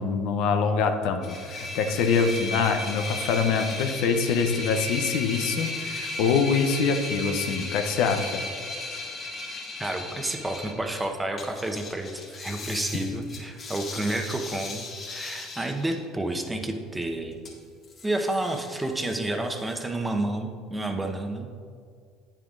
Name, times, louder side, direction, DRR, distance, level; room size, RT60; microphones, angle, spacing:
voice 1, 0.0-8.4, left 5 dB, 70° left, 6 dB, 0.6 m, -25 dB
sound 1, 1.2-11.1 11.4-16.0 17.0-17.1 17.4-17.5 17.8-19.2 19.5-19.7, left 2 dB, 45° left, 1.8 m, -36 dB
voice 2, 9.8-17.4 18.0-21.5, right 1 dB, 15° right, 4 dB, 0.9 m, -30 dB
9.1 x 7.2 x 2.5 m, 2.1 s
hypercardioid pair, 80°, 0 cm